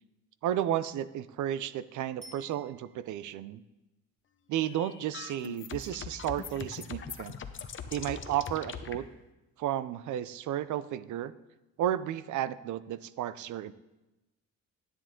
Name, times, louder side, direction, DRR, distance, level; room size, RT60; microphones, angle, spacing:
voice 1, 0.4-3.6 4.5-7.3 7.9-9.1 9.6-11.3 11.8-13.7, right 11 dB, 75° right, 16 dB, 0.6 m, -33 dB
Bicycle bell, 2.2-3.3 12.4-12.5, right 1 dB, 25° right, 2.8 m, -53 dB
sound 1, 4.6-9.0, left 6 dB, 40° left, 0.8 m, -41 dB
11.0 x 10.0 x 3.7 m, 1.0 s
cardioid pair, 90°, 30 cm